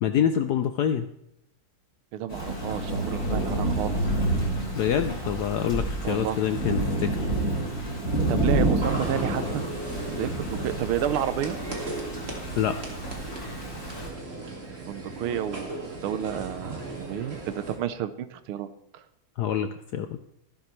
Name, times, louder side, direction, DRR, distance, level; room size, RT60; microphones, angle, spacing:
voice 1, 0.0-1.1 4.7-7.1 12.6-12.8 19.4-20.1, left 9 dB, 75° left, 8 dB, 0.9 m, -26 dB
voice 2, 2.1-4.0 6.0-6.4 8.3-9.6 10.2-11.6 14.8-18.7 18.9-19.0, right 10 dB, 85° right, 12 dB, 1.7 m, -31 dB
Thunder / Rain, 2.3-14.1, right 1 dB, 45° left, 4.1 m, -29 dB
sound 1, 8.8-17.8, right 2 dB, 30° right, 2.2 m, -36 dB
14.0 x 12.0 x 3.2 m, 0.79 s
omnidirectional pair, 2.3 m